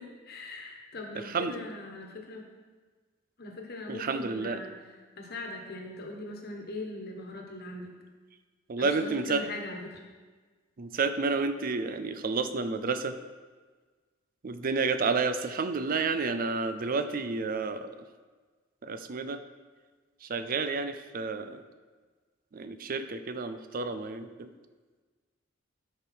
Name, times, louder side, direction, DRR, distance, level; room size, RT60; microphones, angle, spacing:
voice 1, 0.0-2.4 3.4-4.7 5.2-7.9 8.8-10.0, left 2 dB, 55° left, 1 dB, 1.4 m, -40 dB
voice 2, 3.9-4.6 8.7-9.4 10.8-13.2 14.4-17.9 18.8-19.4 20.2-21.6 22.5-24.5, right 4 dB, 45° right, 10 dB, 0.5 m, -30 dB
12.5 x 5.3 x 4.5 m, 1.4 s
head